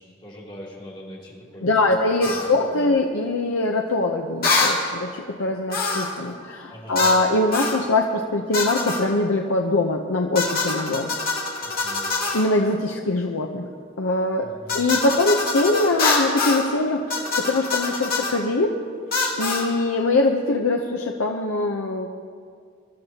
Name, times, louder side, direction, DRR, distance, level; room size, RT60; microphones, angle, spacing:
voice 1, 0.0-1.8 2.2-2.4 2.7-2.9 6.7-7.1 11.6-12.1 14.4-14.8, equal, 25° left, -5 dB, 2.8 m, -42 dB
voice 2, 1.6-11.1 12.3-13.7 14.0-14.5 14.7-18.8 19.4-22.1, left 2 dB, 85° left, 1 dB, 0.8 m, -22 dB
sound 1, 2.2-2.5 4.4-4.8 5.7-6.2 6.9-7.2 7.5-7.8 8.5-9.0 10.3-12.5 14.7-16.7 17.1-18.4 19.1-19.7, left 3 dB, 45° left, 2.0 m, -24 dB
23.0 x 12.5 x 2.9 m, 2.1 s
head